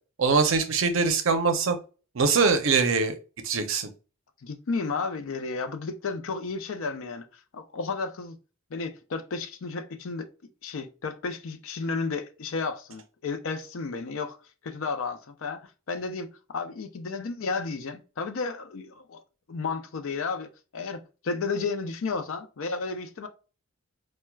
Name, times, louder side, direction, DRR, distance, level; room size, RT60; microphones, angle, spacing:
voice 1, 0.2-1.8 2.1-3.2 3.4-3.9, right 4 dB, 60° right, 0.5 m, -23 dB
voice 2, 4.4-7.3 7.5-8.3 8.7-10.3 10.6-14.4 14.6-19.2 19.5-23.3, left 4 dB, 60° left, 0.4 m, -32 dB
4.4 x 2.2 x 2.2 m
head